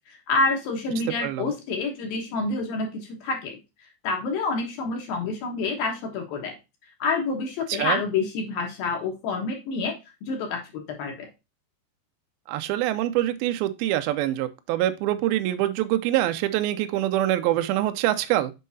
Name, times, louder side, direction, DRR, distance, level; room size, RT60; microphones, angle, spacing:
voice 1, 0.1-3.6 4.0-6.6 7.0-9.9 10.2-11.3, left 3 dB, 65° left, 2.8 m, -28 dB
voice 2, 1.2-1.5 7.7-8.0 12.5-18.5, right 14 dB, 90° right, 2.1 m, -25 dB
7.3 x 5.6 x 2.7 m
omnidirectional pair, 5.1 m